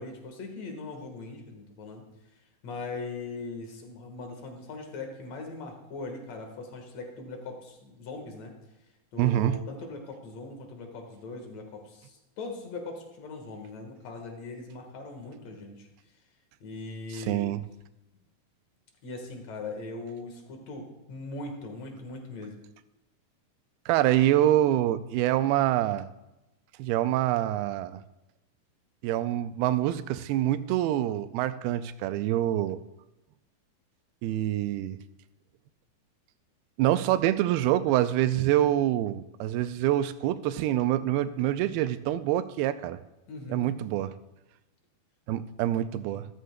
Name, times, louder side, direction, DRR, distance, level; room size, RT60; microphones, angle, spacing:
voice 1, 0.0-2.0 2.6-8.5 9.1-15.9 16.6-17.5 19.0-22.6 43.3-43.7, left 3 dB, 55° left, 3 dB, 2.3 m, -40 dB
voice 2, 9.2-9.5 17.1-17.6 23.9-26.1 26.8-28.0 29.0-32.8 34.2-35.0 36.8-43.0 43.5-44.1 45.3-46.3, right 13 dB, 85° right, 12 dB, 2.5 m, -26 dB
14.5 x 12.5 x 2.2 m, 0.96 s
omnidirectional pair, 4.4 m